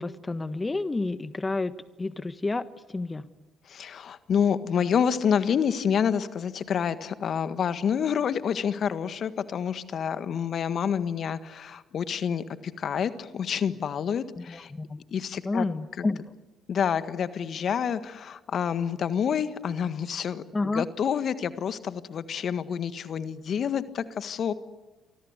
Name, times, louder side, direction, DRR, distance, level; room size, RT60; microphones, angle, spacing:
voice 1, 0.0-1.7 2.0-2.6 2.9-3.2 14.5-15.0 15.4-16.2 20.5-20.8, left 3 dB, 25° left, 12 dB, 1.4 m, -29 dB
voice 2, 3.7-14.7 15.1-15.7 16.0-16.1 16.7-24.5, left 7 dB, 55° left, 12 dB, 1.7 m, -28 dB
28.5 x 24.5 x 8.2 m, 1.2 s
hypercardioid pair, 55°, 0 cm